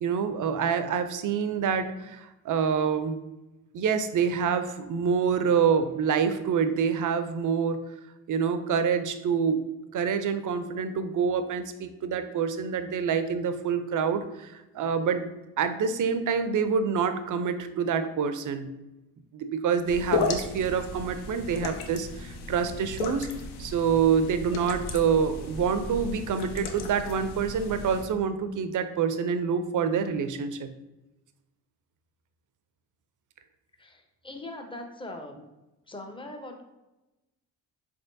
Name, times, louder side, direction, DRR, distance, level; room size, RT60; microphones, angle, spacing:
voice 1, 0.0-3.2 3.7-7.8 8.3-9.6 9.9-15.3 15.6-18.7 19.3-23.3 23.6-30.7, right 6 dB, 45° right, 10 dB, 0.5 m, -26 dB
sound 1, 19.8-28.0, left 4 dB, 60° left, 0.6 m, -35 dB
voice 2, 33.8-35.4 35.9-36.6, left 1 dB, 10° left, 4 dB, 0.6 m, -41 dB
3.7 x 3.4 x 2.6 m, 0.98 s
supercardioid pair, 50°, 44 cm